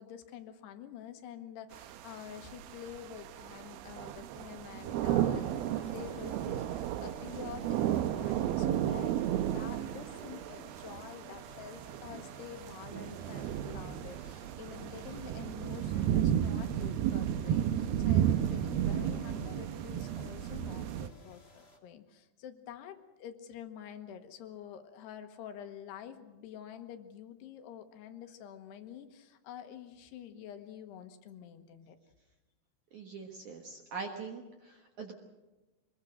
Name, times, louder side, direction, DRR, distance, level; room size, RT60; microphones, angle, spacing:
voice 1, 0.0-5.5 5.8-32.0, left 9 dB, 70° left, 7 dB, 3.0 m, -48 dB
sound 1, 1.7-21.1, right 11 dB, 80° right, 2.3 m, -33 dB
sound 2, 4.7-21.8, left 2 dB, 25° left, 1.2 m, -58 dB
voice 2, 32.9-35.1, right 4 dB, 60° right, 2 dB, 2.1 m, -43 dB
24.0 x 21.0 x 6.5 m, 1.1 s
omnidirectional pair, 5.4 m